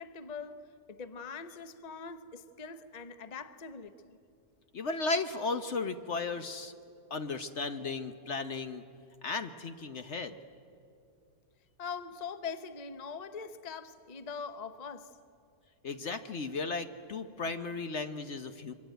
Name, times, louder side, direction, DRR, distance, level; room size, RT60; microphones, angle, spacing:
voice 1, 0.0-4.2 11.8-15.2, left 5 dB, 35° left, 0.8 m, -42 dB
voice 2, 4.7-6.7 7.1-8.8 9.2-10.4 15.8-18.7, left 3 dB, 50° left, 1.1 m, -35 dB
25.5 x 24.0 x 9.1 m
omnidirectional pair, 1.7 m